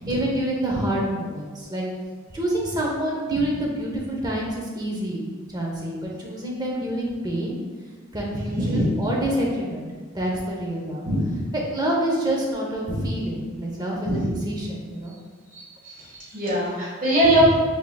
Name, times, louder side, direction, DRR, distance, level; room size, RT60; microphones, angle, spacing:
voice 1, 0.1-1.8 2.3-7.6 8.1-9.9 10.1-11.0 11.7-14.2 14.5-15.1, right 1 dB, 20° right, -2 dB, 0.7 m, -27 dB
voice 2, 8.4-8.9 11.0-11.2 14.0-14.2 15.5-17.6, right 1 dB, 45° right, -7 dB, 1.5 m, -22 dB
4.8 x 3.6 x 2.2 m, 1.5 s
head